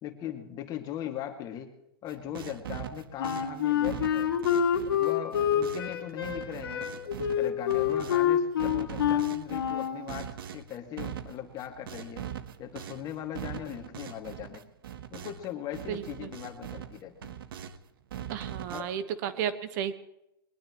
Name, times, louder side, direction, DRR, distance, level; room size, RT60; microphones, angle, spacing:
voice 1, 0.0-1.7 2.0-4.3 4.9-12.3 12.6-14.6 15.1-17.3 18.7-18.9, left 10 dB, 30° left, 5 dB, 2.2 m, -39 dB
sound 1, 2.1-8.3 8.6-15.5 15.7-17.8 18.1-18.8, right 9 dB, 70° right, 1.3 m, -41 dB
Wind instrument woodwind instrument, 3.2-10.0, left 9 dB, 75° left, 2.4 m, -27 dB
voice 2, 15.9-16.3 18.3-20.0, right 9 dB, 50° right, 11 dB, 1.3 m, -33 dB
22.5 x 20.0 x 3.1 m, 0.86 s
hypercardioid pair, 130°, 12 cm